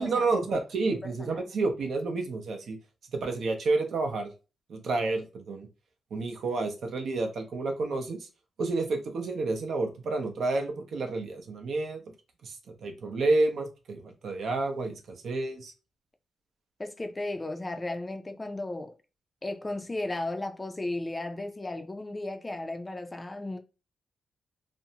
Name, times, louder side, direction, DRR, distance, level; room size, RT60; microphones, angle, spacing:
voice 1, 0.0-2.8 3.1-4.3 4.7-5.7 6.1-8.3 8.6-12.0 12.4-12.6 12.8-15.7, right 3 dB, 70° right, 0.6 m, -30 dB
voice 2, 0.8-1.4 16.8-18.9 19.4-23.6, left 2 dB, 20° left, 0.4 m, -35 dB
2.5 x 2.0 x 2.8 m
cardioid pair, 85°, 0 cm